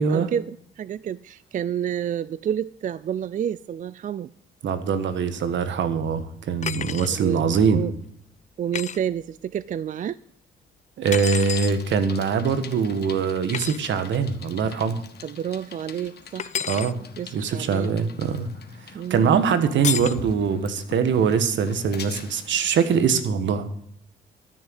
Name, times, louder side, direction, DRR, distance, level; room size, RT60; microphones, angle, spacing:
voice 1, 0.0-4.3 7.1-7.4 7.7-7.9 8.6-10.2 15.2-16.6 17.2-17.9 18.9-19.4, right 9 dB, 40° right, 18 dB, 0.4 m, -29 dB
voice 2, 4.6-7.9 11.0-15.0 16.6-17.0 17.3-18.5 18.9-23.7, right 6 dB, 70° right, 11 dB, 1.5 m, -23 dB
sound 1, 6.6-7.1 8.7-9.0 11.1-11.8 13.5-13.8 16.4-16.9 19.8-20.2, left 8 dB, 35° left, 0.4 m, -29 dB
Bicycle, 11.0-23.0, left 7 dB, 55° left, 1.6 m, -44 dB
13.5 x 6.5 x 7.9 m, 0.72 s
cardioid pair, 90°, 20 cm